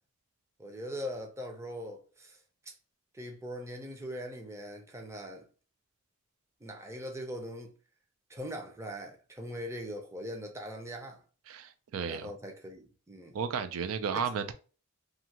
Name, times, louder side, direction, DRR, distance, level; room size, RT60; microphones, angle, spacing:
voice 1, 0.6-2.4 2.7-2.8 3.1-5.5 6.6-7.7 8.3-11.2 12.1-13.4 14.1-14.3, equal, 15° right, 0.5 m, -41 dB
voice 2, 11.5-12.3 13.3-14.5, right 6 dB, 90° right, 0.4 m, -33 dB
2.6 x 2.4 x 2.8 m
head